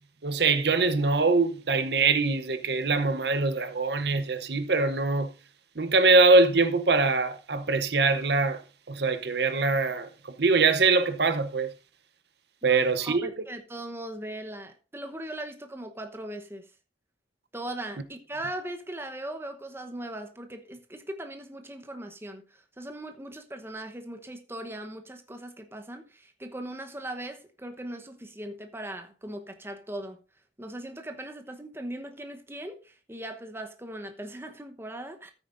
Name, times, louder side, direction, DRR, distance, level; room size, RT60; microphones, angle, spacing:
voice 1, 0.2-5.3 5.8-8.6 8.9-11.7 12.6-13.3, right 3 dB, 65° right, 0.8 m, -23 dB
voice 2, 12.6-16.7 17.5-30.2 30.6-35.3, right 1 dB, 15° right, 0.9 m, -39 dB
13.5 x 9.1 x 2.6 m
head